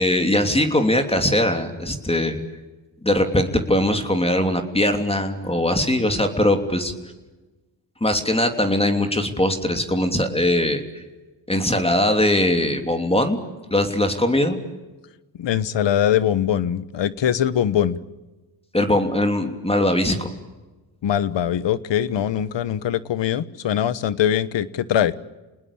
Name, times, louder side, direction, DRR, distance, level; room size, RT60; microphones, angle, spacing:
voice 1, 0.0-2.4 3.0-6.9 8.0-11.0 11.5-13.4 13.7-14.6 18.7-20.3, left 1 dB, 10° left, 6 dB, 3.1 m, -21 dB
voice 2, 15.4-18.0 21.0-25.1, left 10 dB, 70° left, 16 dB, 1.3 m, -22 dB
29.0 x 20.0 x 8.7 m, 1.2 s
cardioid pair, 80°, 45 cm